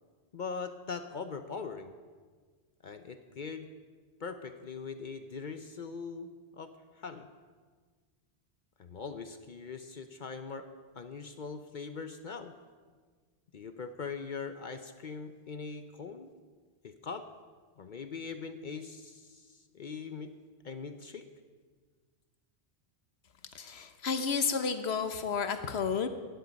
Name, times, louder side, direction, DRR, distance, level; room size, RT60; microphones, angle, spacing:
voice 1, 0.3-1.9 2.8-3.7 4.2-6.7 7.0-7.3 8.8-10.6 11.0-12.5 13.5-16.3 16.8-17.3 17.8-20.3 20.6-21.2, left 5 dB, 50° left, 9 dB, 0.7 m, -41 dB
voice 2, 23.5-26.1, left 6 dB, 70° left, 9 dB, 1.1 m, -31 dB
16.0 x 10.5 x 5.2 m, 1.5 s
omnidirectional pair, 1.1 m